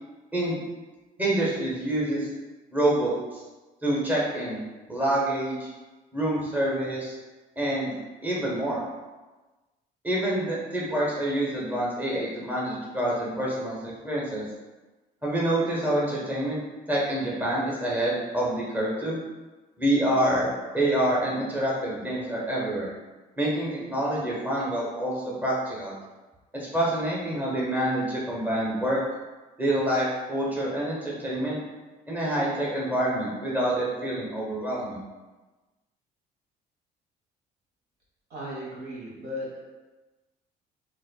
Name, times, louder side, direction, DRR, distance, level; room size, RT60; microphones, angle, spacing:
voice 1, 1.2-2.3 2.7-3.4 3.8-4.6 4.9-5.7 6.1-7.2 7.6-7.9 8.2-8.8 10.0-14.4 15.2-16.6 16.9-19.2 19.8-20.5 20.7-22.9 23.4-25.9 26.5-29.0 29.6-31.6 32.1-35.0, right 1 dB, 10° right, -6 dB, 0.9 m, -27 dB
voice 2, 38.3-39.6, left 1 dB, 70° right, -5 dB, 1.3 m, -36 dB
4.1 x 2.6 x 2.2 m, 1.2 s
cardioid pair, 110°, 17 cm